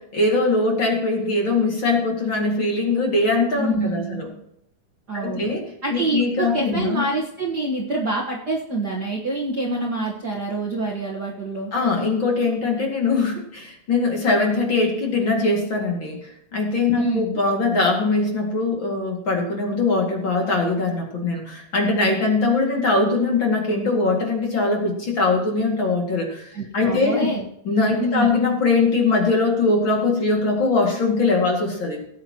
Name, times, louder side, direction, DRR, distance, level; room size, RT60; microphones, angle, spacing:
voice 1, 0.1-4.3 5.1-5.6 5.9-7.0 11.7-16.2 16.5-27.3 27.6-32.0, left 3 dB, 40° left, 0 dB, 2.4 m, -21 dB
voice 2, 3.6-4.2 5.1-5.5 5.8-11.7 17.0-17.2 26.5-27.5 28.0-28.3, right 2 dB, 80° right, -3 dB, 0.9 m, -26 dB
18.0 x 9.2 x 3.0 m, 0.74 s
omnidirectional pair, 4.3 m